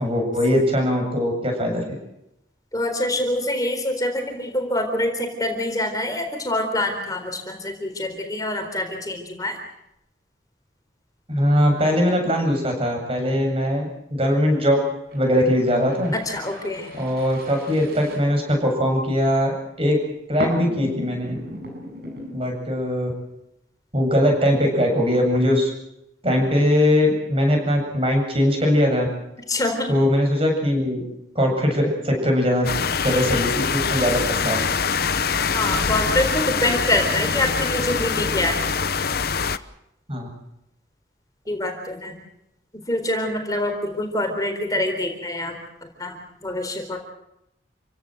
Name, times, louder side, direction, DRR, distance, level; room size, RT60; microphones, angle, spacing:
voice 1, 0.0-1.8 11.3-14.8 15.1-16.1 16.9-19.5 19.8-20.0 20.3-21.4 22.3-23.1 23.9-25.7 26.2-29.1 29.9-31.0 31.3-32.7 33.0-34.6 40.1-40.3, equal, 30° right, 2 dB, 8.0 m, -21 dB
voice 2, 2.7-9.6 16.1-16.9 29.5-29.9 35.5-38.7 41.5-42.2 42.9-45.6 46.0-47.0, left 1 dB, 20° left, 5 dB, 4.0 m, -25 dB
sound 1, 15.1-18.9 20.4-22.3, equal, 55° right, 7.9 m, -36 dB
sound 2, 32.6-39.6, left 5 dB, 55° left, 0.9 m, -24 dB
28.5 x 17.0 x 7.9 m, 0.85 s
head